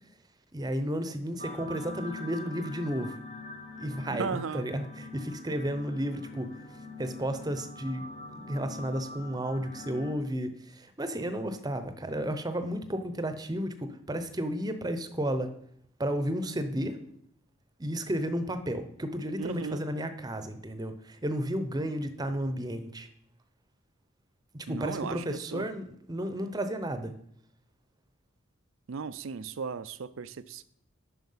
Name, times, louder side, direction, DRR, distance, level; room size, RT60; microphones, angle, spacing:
voice 1, 0.5-3.2 3.8-6.5 7.0-8.0 8.3-15.5 16.0-17.0 17.8-23.1 24.5-27.1, equal, 20° right, 0.7 m, -33 dB
sound 1, 1.4-10.2, left 3 dB, 35° left, 1.1 m, -44 dB
voice 2, 4.1-4.6 19.4-19.8 24.7-25.7 28.9-30.6, right 5 dB, 70° right, 0.5 m, -36 dB
9.3 x 5.8 x 5.6 m
head